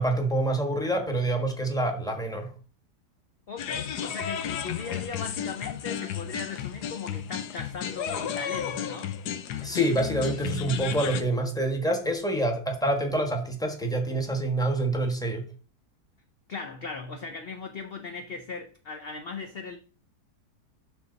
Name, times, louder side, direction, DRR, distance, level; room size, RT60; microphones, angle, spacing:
voice 1, 0.0-2.5 9.6-15.4, right 1 dB, ahead, 1.2 m, -27 dB
voice 2, 3.5-9.2 16.5-19.8, left 4 dB, 50° left, 0.7 m, -38 dB
sound 1, 3.6-11.2, left 9 dB, 75° left, 1.3 m, -33 dB
12.0 x 4.1 x 4.0 m
omnidirectional pair, 1.8 m